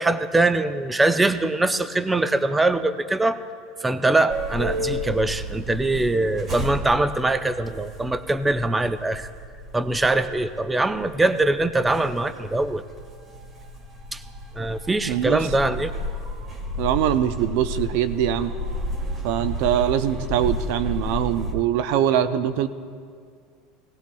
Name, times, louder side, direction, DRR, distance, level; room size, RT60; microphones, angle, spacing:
voice 1, 0.0-3.4 3.8-9.3 9.7-12.8 14.1-14.2 14.6-15.9, right 2 dB, 15° right, 11 dB, 0.6 m, -22 dB
sound 1, 4.3-21.5, equal, 35° right, 2.5 m, -32 dB
voice 2, 15.1-15.7 16.8-18.5 19.2-22.7, right 10 dB, 65° right, 11 dB, 0.5 m, -23 dB
18.0 x 17.5 x 2.3 m, 2.1 s
hypercardioid pair, 80°, 0 cm